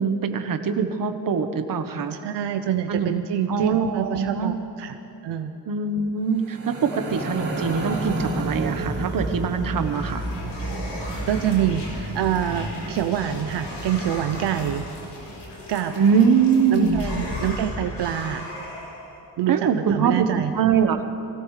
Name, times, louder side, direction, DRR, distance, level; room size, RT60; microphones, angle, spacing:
voice 1, 0.0-2.1 2.9-3.1 3.5-4.6 5.7-10.2 16.0-17.0 19.5-21.0, right 6 dB, 55° right, 7 dB, 1.2 m, -23 dB
voice 2, 2.1-5.0 5.2-5.5 11.3-14.9 15.7-16.0 16.7-18.5 19.4-20.5, right 10 dB, 85° right, 8 dB, 0.7 m, -26 dB
sound 1, 6.4-15.7, right 1 dB, 35° right, 3.5 m, -31 dB
sound 2, 9.3-19.2, left 2 dB, 85° left, 3.8 m, -37 dB
24.0 x 17.0 x 3.3 m, 2.7 s
cardioid pair, 90°, 40 cm